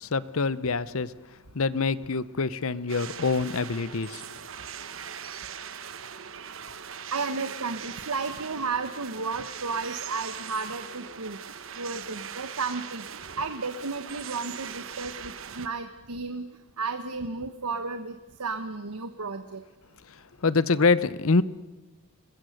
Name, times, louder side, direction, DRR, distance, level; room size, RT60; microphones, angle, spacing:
voice 1, 0.0-1.1 1.5-4.2 20.4-21.4, left 4 dB, 70° left, 17 dB, 0.8 m, -25 dB
sound 1, 2.9-15.7, right 8 dB, 60° right, 1.0 m, -40 dB
voice 2, 7.1-11.4 11.7-13.1 13.4-16.5 16.8-19.6, right 4 dB, 85° right, 9 dB, 1.1 m, -33 dB
27.0 x 21.0 x 6.6 m, 1.1 s
head